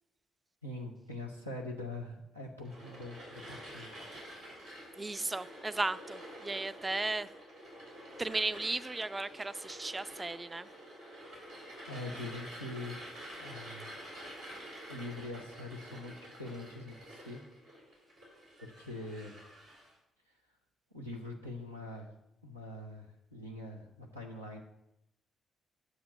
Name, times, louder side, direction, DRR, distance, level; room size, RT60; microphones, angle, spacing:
voice 1, 0.6-4.1 11.9-13.0 13.3-14.0 14.9-17.4 18.6-19.4 20.3-20.4 20.9-22.1 22.4-24.6, left 2 dB, 90° right, 0 dB, 1.0 m, -43 dB
sound 1, 2.6-19.9, equal, 70° right, 3.5 m, -49 dB
voice 2, 5.0-7.3 8.2-10.7, right 2 dB, 20° right, 15 dB, 0.4 m, -35 dB
9.3 x 7.1 x 4.2 m, 0.85 s
figure-of-eight pair, 45°, 0 cm